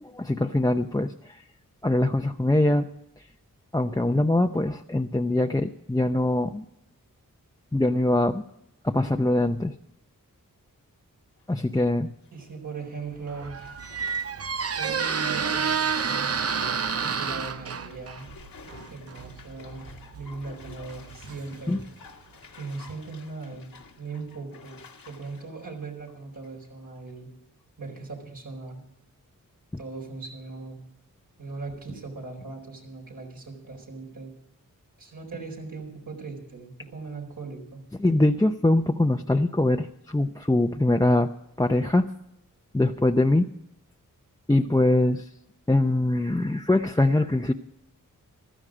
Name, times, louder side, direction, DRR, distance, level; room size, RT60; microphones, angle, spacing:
voice 1, 0.0-1.4 1.8-2.9 3.7-6.6 7.7-8.4 8.8-9.7 11.5-12.1 21.7-21.8 38.0-41.3 41.6-42.1 42.7-43.5 44.5-45.3 45.7-47.5, left 1 dB, 10° left, 4 dB, 0.7 m, -23 dB
Bathtub (filling or washing), 11.4-11.8 12.2-12.4 13.5-26.7 27.1-27.2, left 5 dB, 80° left, 1.8 m, -49 dB
voice 2, 12.3-13.6 14.7-16.3 17.0-18.3 18.9-21.8 22.6-23.7 24.0-24.8 25.0-27.3 27.8-28.8 29.8-30.8 31.4-34.3 35.0-37.8, right 4 dB, 70° right, -1 dB, 4.4 m, -39 dB
Squeak, 13.2-21.9, right 6 dB, 45° right, 0.7 m, -30 dB
15.5 x 12.5 x 5.1 m, 0.79 s
cardioid pair, 45°, 34 cm